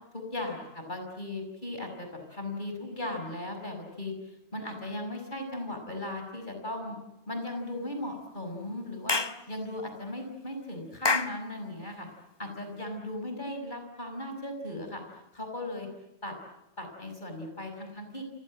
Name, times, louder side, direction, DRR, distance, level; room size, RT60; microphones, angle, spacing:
voice 1, 0.1-4.1 4.5-7.0 7.3-12.1 12.4-15.0 15.3-15.9 16.2-16.3 16.8-18.2, left 1 dB, 45° left, 4 dB, 6.1 m, -37 dB
Clapping / Chirp tweet, 9.1-9.4 11.0-11.4, left 3 dB, 25° left, 1.0 m, -26 dB
29.0 x 26.5 x 7.7 m, 0.95 s
omnidirectional pair, 1.1 m